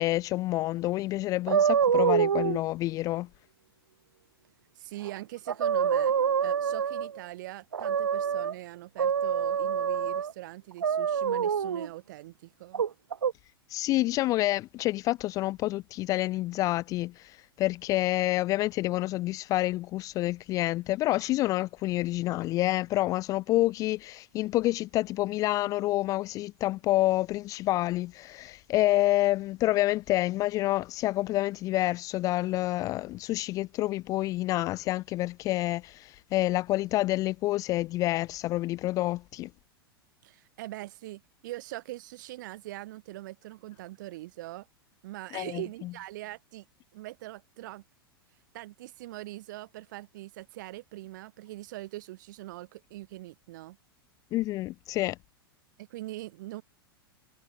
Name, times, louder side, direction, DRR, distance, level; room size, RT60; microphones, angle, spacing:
voice 1, 0.0-3.3 13.7-39.5 45.3-46.0 54.3-55.2, left 17 dB, 25° left, 0.4 m, -28 dB
sound 1, 1.5-2.6 5.0-5.1 5.5-7.2 7.7-8.5 9.0-10.3 10.8-11.9 12.7-13.3, right 7 dB, 75° right, 0.5 m, -26 dB
voice 2, 4.8-6.1 6.4-12.8 40.2-44.7 45.0-46.6 46.9-47.8 48.5-53.8 55.8-56.6, right 17 dB, 50° right, 2.5 m, -42 dB
figure-of-eight pair, 95°, 13 cm